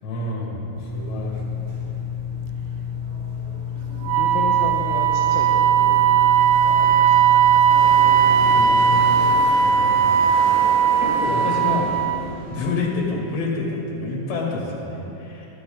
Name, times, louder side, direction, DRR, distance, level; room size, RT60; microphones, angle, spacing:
voice 1, 0.0-0.6 0.9-1.4 8.5-9.1 9.5-10.2 11.0-12.0 12.4-15.5, left 3 dB, 65° left, -3 dB, 4.7 m, -28 dB
sound 1, 0.8-9.3, left 7 dB, 20° right, 2.8 m, -30 dB
Wind instrument woodwind instrument, 4.0-12.3, right 8 dB, 90° right, 3.2 m, -17 dB
voice 2, 4.1-7.4, left 4 dB, 80° left, -1 dB, 3.3 m, -34 dB
sound 2, 7.7-12.8, left 1 dB, 35° left, 4.1 m, -33 dB
23.0 x 11.5 x 4.0 m, 2.9 s
omnidirectional pair, 5.5 m